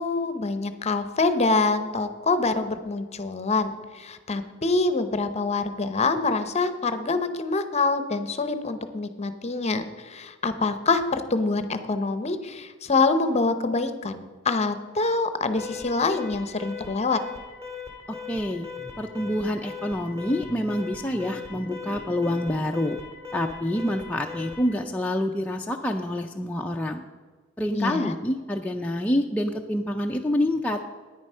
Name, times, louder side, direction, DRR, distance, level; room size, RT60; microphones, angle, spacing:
voice 1, 0.0-17.2 27.7-28.1, left 3 dB, 30° left, 10 dB, 0.7 m, -25 dB
Alarm, 15.6-24.8, left 6 dB, 15° right, 2.1 m, -39 dB
voice 2, 18.3-23.0 23.3-27.0 27.6-30.8, left 1 dB, 5° left, 1 dB, 0.4 m, -27 dB
9.6 x 9.5 x 5.5 m, 1.4 s
head